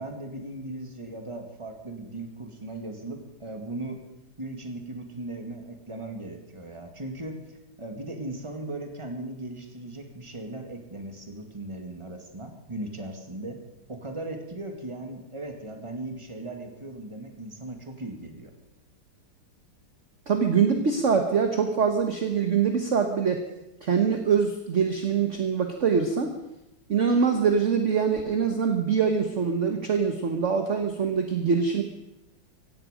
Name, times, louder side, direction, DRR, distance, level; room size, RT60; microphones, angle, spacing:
voice 1, 0.0-4.1 4.4-13.6 13.9-18.5, right 2 dB, 15° right, 4 dB, 2.0 m, -38 dB
voice 2, 20.3-23.4 23.8-26.3 26.9-31.8, right 6 dB, 40° right, 5 dB, 1.3 m, -24 dB
17.5 x 16.0 x 5.2 m, 0.91 s
omnidirectional pair, 2.3 m